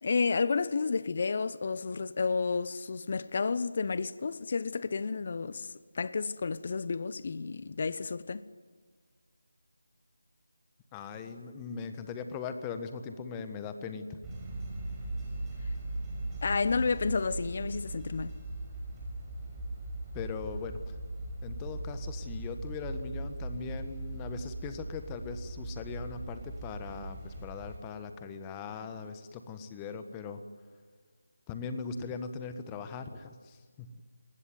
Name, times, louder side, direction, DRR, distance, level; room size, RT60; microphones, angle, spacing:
voice 1, 0.0-8.4 16.4-18.4, left 4 dB, 40° left, 1.0 m, -31 dB
voice 2, 10.9-14.2 20.1-21.0 21.4-30.4 31.5-33.9, left 5 dB, 15° left, 1.4 m, -40 dB
sound 1, 14.2-27.8, right 2 dB, 10° right, 6.0 m, -39 dB
28.0 x 19.5 x 9.5 m
figure-of-eight pair, 160°, 0 cm